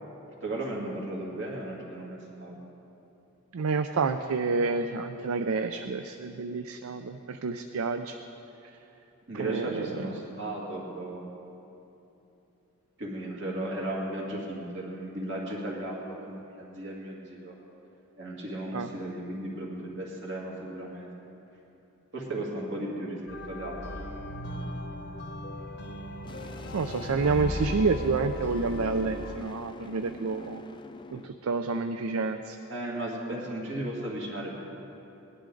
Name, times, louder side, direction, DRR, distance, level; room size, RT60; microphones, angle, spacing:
voice 1, 0.4-2.6 9.3-11.3 13.0-17.5 18.2-21.1 22.1-23.2 23.5-23.8 32.7-34.6, right 1 dB, 55° right, -3 dB, 2.3 m, -35 dB
voice 2, 3.5-8.2 9.3-9.8 18.7-18.9 26.7-30.6 31.1-32.6, right 4 dB, 75° right, 8 dB, 0.4 m, -29 dB
sound 1, 23.3-29.4, left 1 dB, 50° left, 0.7 m, -37 dB
sound 2, 26.2-31.3, left 2 dB, 20° left, 0.4 m, -46 dB
19.0 x 11.5 x 3.9 m, 2.9 s
head